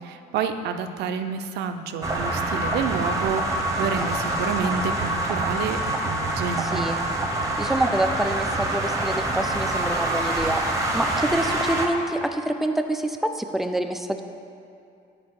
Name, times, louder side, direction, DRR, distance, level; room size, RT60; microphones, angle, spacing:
voice 1, 0.0-6.9, right 6 dB, 80° right, 8 dB, 0.6 m, -29 dB
sound 1, 2.0-11.9, right 1 dB, 20° right, 0.9 m, -26 dB
voice 2, 6.7-7.0 7.6-10.6 10.9-14.2, right 1 dB, ahead, 6 dB, 0.4 m, -26 dB
8.6 x 5.0 x 4.7 m, 2.5 s
cardioid pair, 110°, 17 cm